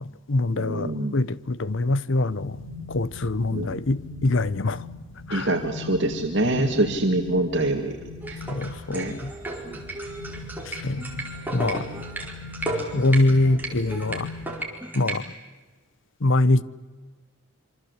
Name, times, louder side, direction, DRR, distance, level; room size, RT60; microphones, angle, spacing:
voice 1, 0.0-2.6 2.9-4.8 5.3-5.5 6.5-6.6 8.5-9.3 10.8-11.2 11.5-11.9 12.9-14.3 14.9-15.2 16.2-16.6, left 2 dB, 65° left, 0.9 m, -24 dB
voice 2, 0.6-1.2 3.5-3.8 5.3-7.9 8.3-8.4 8.9-9.2 9.6-9.8, right 1 dB, 60° right, 2.2 m, -25 dB
sound 1, 2.3-14.5, left 3 dB, 85° left, 6.2 m, -40 dB
sound 2, 8.2-15.2, right 2 dB, 10° right, 4.4 m, -34 dB
27.0 x 25.0 x 8.2 m
head